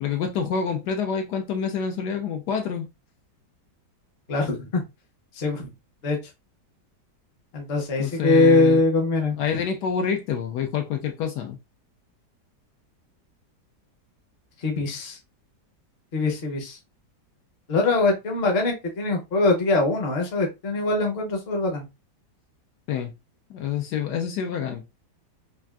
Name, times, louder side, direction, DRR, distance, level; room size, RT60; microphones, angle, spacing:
voice 1, 0.0-2.9 8.0-8.8 9.4-11.6 22.9-23.1 23.5-24.8, left 7 dB, 75° left, 1.1 m, -27 dB
voice 2, 4.3-4.8 5.4-5.7 6.0-6.2 7.5-9.4 14.6-15.2 16.1-16.8 17.7-21.8, left 2 dB, 45° left, 0.9 m, -22 dB
3.6 x 2.4 x 2.2 m
omnidirectional pair, 1.8 m